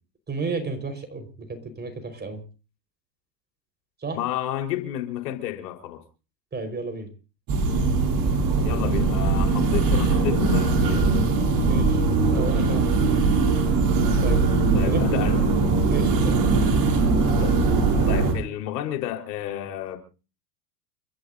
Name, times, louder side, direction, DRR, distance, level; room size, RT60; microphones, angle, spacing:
voice 1, 0.3-2.4 4.0-4.2 6.5-7.1 11.6-13.2 14.2-14.4 14.8-15.0 15.9-16.4, right 4 dB, 20° right, 5.0 m, -32 dB
voice 2, 4.1-6.0 8.6-11.2 14.7-15.4 17.3-17.7 18.1-20.0, left 12 dB, 70° left, 4.7 m, -31 dB
sound 1, 7.5-18.3, right 3 dB, 40° right, 7.4 m, -21 dB
29.5 x 14.5 x 2.7 m
hypercardioid pair, 105°, 50 cm